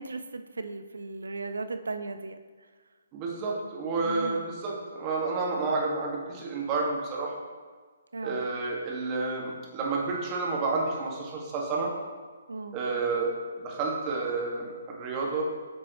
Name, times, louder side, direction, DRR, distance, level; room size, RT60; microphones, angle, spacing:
voice 1, 0.0-2.4 4.0-4.4 8.1-8.4 12.5-12.8, right 3 dB, 80° right, 9 dB, 0.6 m, -36 dB
voice 2, 3.1-7.3 8.2-11.9 12.7-13.3 13.6-15.4, right 3 dB, 30° right, -2 dB, 1.8 m, -30 dB
9.0 x 6.1 x 3.1 m, 1.5 s
figure-of-eight pair, 140°, 0 cm